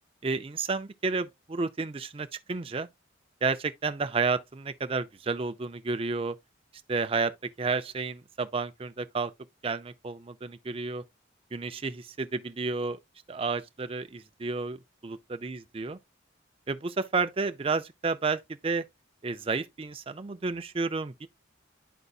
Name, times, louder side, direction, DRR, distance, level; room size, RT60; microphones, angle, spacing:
voice 1, 0.2-2.9 3.4-6.3 6.9-9.3 9.6-11.0 11.5-13.0 13.3-15.2 15.4-16.0 16.7-18.8 19.2-21.3, right 4 dB, 30° right, 0.4 m, -31 dB
11.0 x 4.0 x 2.3 m
head